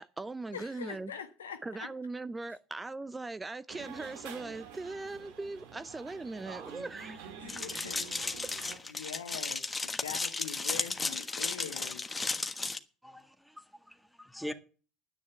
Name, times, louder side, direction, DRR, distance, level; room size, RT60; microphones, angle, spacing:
voice 1, 0.0-1.1 1.6-7.3, right 3 dB, 15° right, 0.5 m, -40 dB
voice 2, 0.5-1.9 7.4-8.4 8.9-12.1, left 8 dB, 80° left, 1.4 m, -43 dB
sound 1, 3.7-8.8, right 7 dB, 65° right, 2.0 m, -47 dB
sound 2, 7.5-12.8, left 3 dB, 15° left, 1.3 m, -34 dB
voice 3, 13.0-14.5, equal, ahead, 1.7 m, -43 dB
10.5 x 9.8 x 7.0 m
figure-of-eight pair, 65°, 0 cm